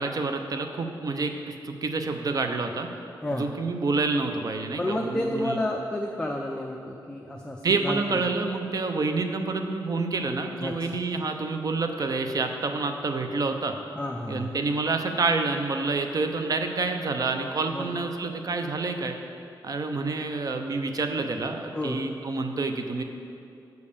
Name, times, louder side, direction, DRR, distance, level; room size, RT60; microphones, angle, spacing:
voice 1, 0.0-2.9 3.3-5.6 7.6-13.7 14.3-19.2 19.6-23.0, right 3 dB, 50° right, 6 dB, 0.7 m, -28 dB
voice 2, 4.8-8.0 10.6-10.7 14.0-14.5 17.7-18.0 21.7-22.1, left 1 dB, 10° left, 0 dB, 0.6 m, -30 dB
7.9 x 5.3 x 6.7 m, 2.6 s
wide cardioid pair, 110°, 8 cm